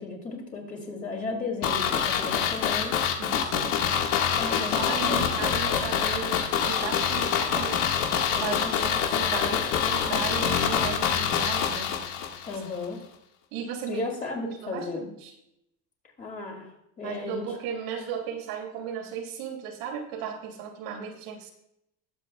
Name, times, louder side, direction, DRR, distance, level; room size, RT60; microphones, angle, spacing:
voice 1, 0.0-3.0 4.4-5.4 6.3-6.7 8.3-8.9 12.5-13.0 13.9-15.0 16.2-16.7 17.0-17.5, left 3 dB, 20° left, 0 dB, 2.6 m, -35 dB
sound 1, 1.6-12.6 12.8-12.9, left 8 dB, 80° left, 1.8 m, -26 dB
voice 2, 3.2-3.8 4.5-7.8 8.4-8.6 9.1-12.0 13.5-14.1 14.4-15.3 17.0-21.5, right 7 dB, 85° right, 1 dB, 2.8 m, -35 dB
20.5 x 7.6 x 2.4 m, 0.81 s
cardioid pair, 170°, 38 cm